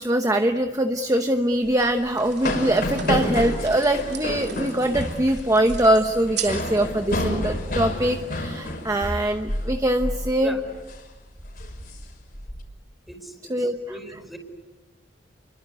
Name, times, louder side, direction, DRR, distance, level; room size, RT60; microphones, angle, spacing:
voice 1, 0.0-10.6 13.5-13.8, right 1 dB, 20° right, 6 dB, 1.0 m, -22 dB
sound 1, 1.1-1.2 1.8-6.8 7.1-7.2, right 9 dB, 65° right, 3.1 m, -39 dB
sound 2, 1.6-9.7 10.0-10.3 10.6-11.0 11.4-12.6, left 1 dB, 55° left, 5.9 m, -29 dB
voice 2, 13.1-14.4, equal, ahead, 5 dB, 4.9 m, -40 dB
29.5 x 23.5 x 8.3 m, 1.2 s
head